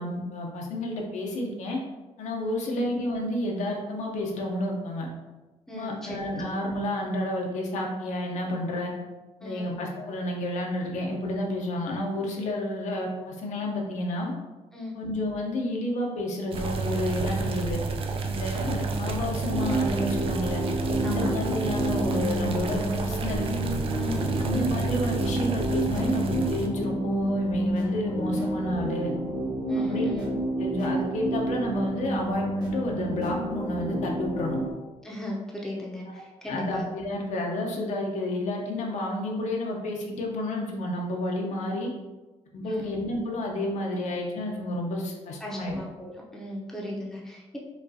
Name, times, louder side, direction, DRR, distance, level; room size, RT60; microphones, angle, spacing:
voice 1, 0.0-1.8 2.2-5.1 5.7-8.9 9.4-14.3 14.9-17.8 18.3-20.6 21.0-23.4 24.4-29.1 29.8-30.2 30.6-34.6 36.5-41.9 42.5-45.8, left 1 dB, 80° left, 0 dB, 0.7 m, -30 dB
voice 2, 5.7-6.5 9.4-9.7 14.7-15.0 21.0-21.4 24.0-24.5 29.7-30.3 35.0-36.9 42.6-42.9 45.4-47.6, left 1 dB, 5° left, -4 dB, 0.6 m, -37 dB
sound 1, 16.5-26.7, right 4 dB, 50° right, 0.4 m, -30 dB
sound 2, 19.5-34.7, right 1 dB, 35° right, 1.1 m, -29 dB
5.1 x 2.4 x 2.7 m, 1.1 s
wide cardioid pair, 160°, 12 cm